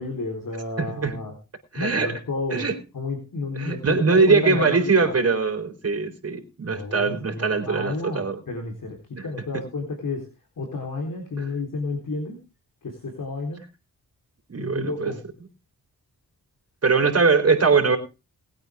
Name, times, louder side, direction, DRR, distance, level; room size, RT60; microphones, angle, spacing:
voice 1, 0.0-1.4 1.8-2.7 2.9-5.1 6.6-10.3 10.6-12.4 12.8-13.6 14.6-15.2, left 3 dB, 65° left, 2 dB, 3.8 m, -31 dB
voice 2, 0.8-1.2 1.7-2.1 2.5-2.7 3.6-8.4 9.2-9.3 9.5-9.6 14.5-15.1 16.8-18.0, right 4 dB, 40° right, 6 dB, 3.9 m, -21 dB
20.5 x 8.9 x 3.6 m, 0.29 s
cardioid pair, 60°, 36 cm